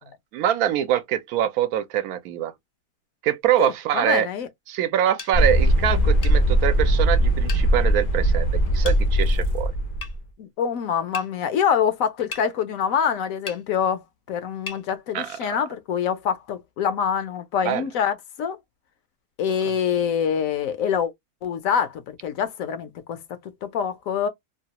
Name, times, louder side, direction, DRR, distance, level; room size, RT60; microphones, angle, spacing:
voice 1, 0.3-2.5 3.2-4.3 4.7-9.7 15.1-15.6 17.6-17.8, right 11 dB, 80° right, 1.0 m, -24 dB
voice 2, 3.6-4.5 10.4-18.6 19.4-21.1 21.4-23.2 23.6-24.3, left 7 dB, 70° left, 1.0 m, -25 dB
sound 1, 5.2-5.3 6.2-6.4 7.5-7.7 8.8-9.0 10.0-10.1 11.1-11.3 12.3-12.5 13.5-13.6 14.7-14.8, left 4 dB, 85° left, 0.3 m, -35 dB
sound 2, 5.3-10.2, right 1 dB, 50° left, 0.6 m, -20 dB
2.9 x 2.3 x 2.8 m
omnidirectional pair, 1.6 m